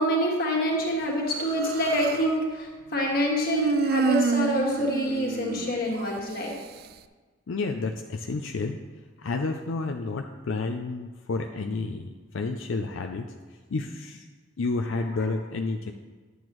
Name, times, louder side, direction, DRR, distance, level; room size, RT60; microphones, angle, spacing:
voice 1, 0.0-6.6 15.2-15.3, equal, 50° left, -2 dB, 1.8 m, -26 dB
Human voice, 1.3-2.3 3.5-6.2, right 5 dB, 50° right, 0.3 m, -28 dB
voice 2, 7.5-8.8 9.2-13.3 13.7-14.2 14.6-15.9, left 3 dB, 85° left, 5 dB, 0.5 m, -30 dB
10.5 x 7.9 x 3.1 m, 1.4 s
head